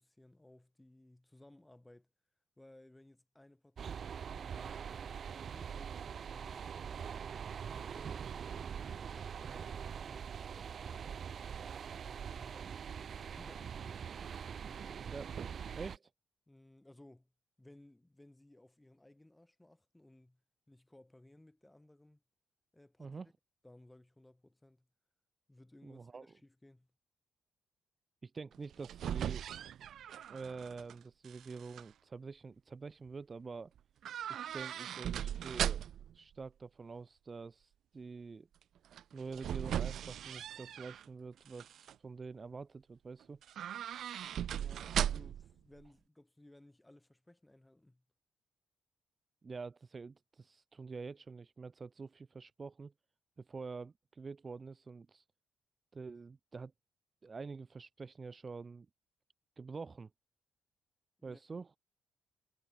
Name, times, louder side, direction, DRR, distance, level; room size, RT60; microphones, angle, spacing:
voice 1, 0.0-2.1 2.6-6.0 6.3-7.1 7.7-11.3 12.0-14.1 14.3-15.1 16.5-17.3 17.6-20.4 20.7-22.2 22.7-23.2 23.6-24.9 25.5-26.9 44.5-48.0 61.2-61.6, left 1 dB, 10° left, 6.4 m, -61 dB
sound 1, 3.8-16.0, right 7 dB, 50° right, 1.1 m, -43 dB
voice 2, 15.7-16.1 23.0-23.3 25.8-26.3 28.2-29.4 30.3-33.7 34.3-35.8 36.1-38.5 39.1-43.4 49.4-52.9 53.4-55.2 55.9-56.7 57.2-58.9 59.6-60.1 61.2-61.8, right 4 dB, 30° right, 0.5 m, -47 dB
sound 2, 28.5-30.9 31.2-31.8 34.0-36.1 38.9-41.0 41.5-41.9 43.4-45.5 45.8-45.9, right 10 dB, 70° right, 0.8 m, -38 dB
cardioid pair, 90°, 0 cm